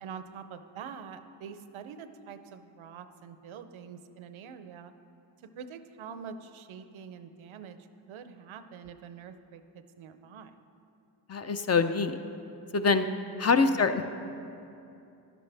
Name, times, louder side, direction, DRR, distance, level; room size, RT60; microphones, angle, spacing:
voice 1, 0.0-4.9 5.4-7.8 8.1-10.5 13.7-14.0, right 7 dB, 75° right, 10 dB, 0.7 m, -45 dB
voice 2, 11.3-12.2 12.7-13.1 13.4-14.0, left 4 dB, 30° left, 9 dB, 0.6 m, -24 dB
11.5 x 11.0 x 3.4 m, 2.7 s
supercardioid pair, 40°, 48 cm